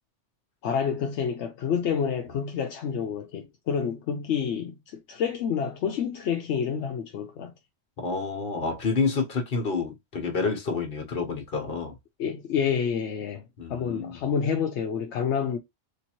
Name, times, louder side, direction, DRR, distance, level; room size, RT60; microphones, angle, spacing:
voice 1, 0.6-7.5 12.2-13.4 13.7-15.6, left 7 dB, 75° left, 0.9 m, -28 dB
voice 2, 8.0-11.9 13.6-14.2, left 4 dB, 55° left, 1.2 m, -29 dB
3.4 x 2.9 x 2.9 m
omnidirectional pair, 1.2 m